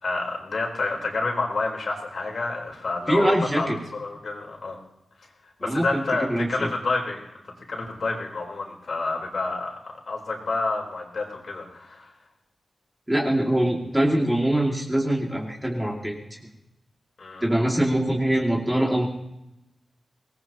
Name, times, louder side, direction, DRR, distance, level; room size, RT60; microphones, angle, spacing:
voice 1, 0.0-3.7 3.9-4.8 5.6-7.2 7.7-12.1 17.2-17.4, left 3 dB, 60° left, 0 dB, 4.2 m, -29 dB
voice 2, 3.1-3.8 5.6-6.7 13.1-16.4 17.4-19.1, right 1 dB, 10° right, -2 dB, 2.6 m, -23 dB
24.5 x 19.5 x 3.0 m, 0.88 s
wide cardioid pair, 125°, 0 cm